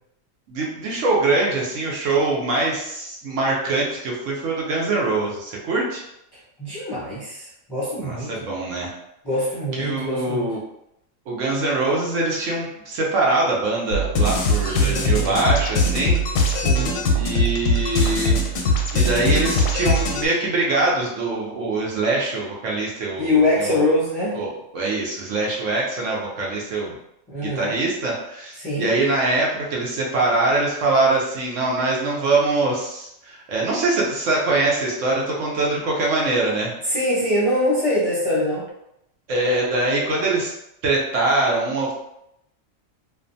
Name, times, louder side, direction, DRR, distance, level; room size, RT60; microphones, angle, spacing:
voice 1, 0.5-6.0 8.0-8.9 9.8-10.6 11.3-16.2 17.1-23.9 24.4-26.9 27.4-36.7 39.3-40.5 40.8-41.9, right 2 dB, 75° right, -3 dB, 1.0 m, -23 dB
voice 2, 6.6-8.3 9.2-10.5 14.6-15.3 16.5-17.0 23.2-24.4 27.3-27.7 28.6-28.9 36.9-38.6, left 1 dB, 25° left, -9 dB, 0.6 m, -23 dB
sound 1, 13.9-20.3, left 1 dB, 85° left, 1.0 m, -21 dB
2.5 x 2.2 x 2.6 m, 0.81 s
omnidirectional pair, 1.4 m